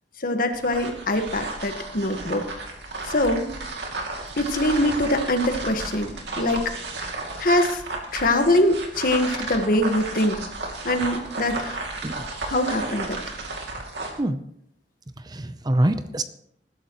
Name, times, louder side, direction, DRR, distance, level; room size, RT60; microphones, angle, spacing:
voice 1, 0.2-2.4 3.0-3.5 4.4-6.7 7.4-7.8 8.1-10.5 10.8-11.8 12.5-13.2, left 1 dB, 55° left, 6 dB, 1.5 m, -23 dB
sound 1, 0.5-14.2, right 2 dB, 75° right, 2.5 m, -33 dB
voice 2, 15.2-16.2, right 1 dB, 25° right, 11 dB, 0.7 m, -24 dB
20.0 x 11.0 x 3.1 m, 0.71 s
head